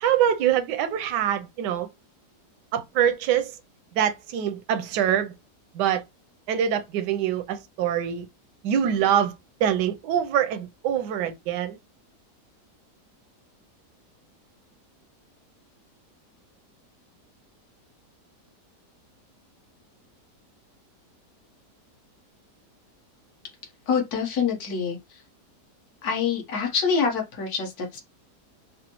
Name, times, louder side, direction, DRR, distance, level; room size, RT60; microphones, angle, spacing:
voice 1, 0.0-1.9 2.7-3.5 4.0-5.3 5.7-6.0 6.5-8.3 8.6-9.3 9.6-11.8, right 9 dB, 85° right, 1.2 m, -24 dB
voice 2, 23.9-25.2 26.0-28.0, left 6 dB, 65° left, 1.6 m, -26 dB
4.9 x 2.0 x 2.9 m
omnidirectional pair, 1.8 m